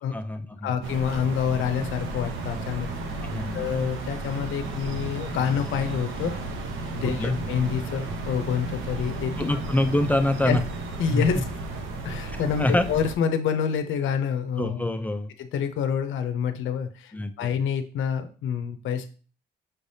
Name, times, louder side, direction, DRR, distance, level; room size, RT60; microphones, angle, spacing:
voice 1, 0.1-0.7 3.2-3.6 7.0-7.4 9.4-10.6 11.1-11.4 12.6-12.8 14.6-15.3 17.1-17.3, left 1 dB, 10° left, 8 dB, 0.4 m, -25 dB
voice 2, 0.6-2.9 3.5-6.3 6.9-9.6 10.5-10.6 11.0-11.4 12.0-14.9 15.4-19.1, left 7 dB, 80° left, 8 dB, 0.6 m, -27 dB
sound 1, 0.8-13.2, right 2 dB, 90° right, 0.8 m, -33 dB
5.7 x 3.3 x 2.7 m, 0.38 s
cardioid pair, 90°, 20 cm